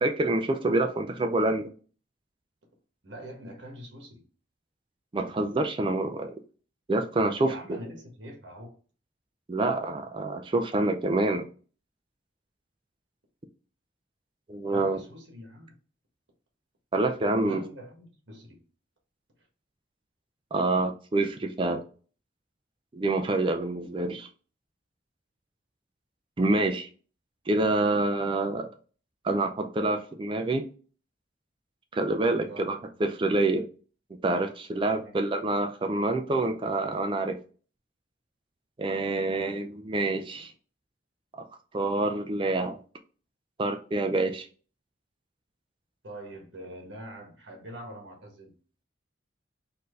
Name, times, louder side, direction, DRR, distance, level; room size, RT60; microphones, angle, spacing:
voice 1, 0.0-1.7 5.1-6.4 6.9-7.5 9.5-11.5 14.5-15.0 16.9-17.6 20.5-21.8 22.9-24.3 26.4-26.9 27.5-28.7 29.2-30.7 31.9-33.6 34.2-37.4 38.8-40.5 41.4-41.5 41.7-42.8 43.6-44.5, right 2 dB, 25° right, 0.4 m, -27 dB
voice 2, 3.0-4.2 7.4-8.8 14.6-15.8 17.4-18.6 19.4-19.5 32.4-32.9 35.0-35.3 39.3-40.0 40.3-40.5 46.0-48.6, right 1 dB, 65° right, 1.4 m, -45 dB
4.3 x 2.7 x 3.1 m
head